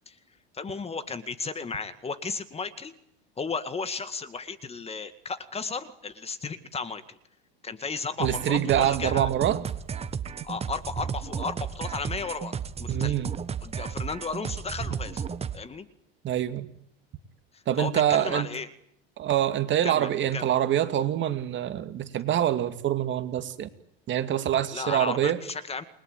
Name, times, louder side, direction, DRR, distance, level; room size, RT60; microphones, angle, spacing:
voice 1, 0.5-2.9 3.4-7.2 7.6-9.3 10.4-12.5 12.8-13.2 13.6-15.2 15.5-15.9 17.5-18.7 19.8-20.5 24.7-25.8, left 4 dB, 20° left, 11 dB, 2.0 m, -34 dB
sound 1, 8.2-15.6, right 7 dB, 20° right, 1.4 m, -34 dB
voice 2, 8.2-9.6 12.9-13.3 16.2-16.7 17.7-18.5 19.2-23.7 24.1-25.4, right 11 dB, 40° right, 9 dB, 2.4 m, -25 dB
29.5 x 22.0 x 9.3 m, 0.71 s
supercardioid pair, 120°, 30 cm